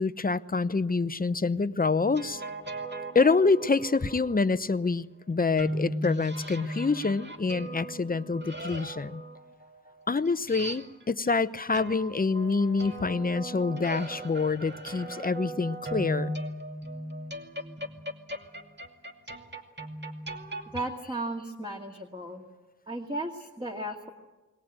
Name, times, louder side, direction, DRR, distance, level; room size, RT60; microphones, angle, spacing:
voice 1, 0.0-2.4 3.1-9.2 10.1-16.3, left 4 dB, 25° left, 13 dB, 0.8 m, -26 dB
sound 1, 1.8-4.4 5.6-11.3 11.7-20.9, right 1 dB, 30° right, 2.5 m, -38 dB
voice 2, 20.7-22.5 22.9-24.1, right 1 dB, 15° right, 1 dB, 2.2 m, -35 dB
22.0 x 18.5 x 8.9 m, 1.1 s
cardioid pair, 60°, 33 cm